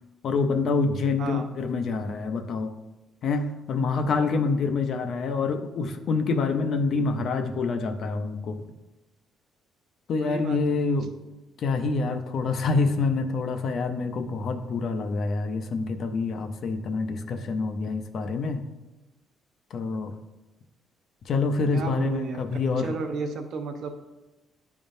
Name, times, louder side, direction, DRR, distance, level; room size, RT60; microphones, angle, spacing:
voice 1, 0.2-2.7 3.2-8.7 10.1-11.1 11.6-18.6 19.7-20.1 21.3-22.9, left 4 dB, 55° left, 7 dB, 0.5 m, -26 dB
voice 2, 10.2-10.8 21.7-22.4 22.8-23.9, right 4 dB, 60° right, 5 dB, 0.7 m, -32 dB
10.0 x 3.6 x 2.6 m, 1.1 s
cardioid pair, 120°, 0 cm